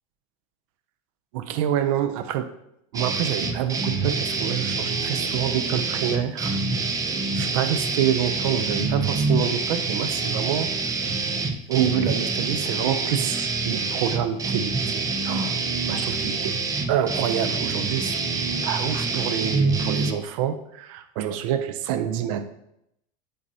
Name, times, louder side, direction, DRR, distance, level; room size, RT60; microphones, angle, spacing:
voice 1, 1.3-2.5 2.9-6.6 7.3-10.7 11.7-15.6 15.9-16.6 16.9-18.3 18.6-22.5, right 10 dB, 75° right, 10 dB, 0.6 m, -27 dB
sound 1, 2.9-20.1, right 4 dB, 20° right, 0.6 m, -26 dB
8.4 x 4.0 x 2.8 m, 0.78 s
supercardioid pair, 130°, 18 cm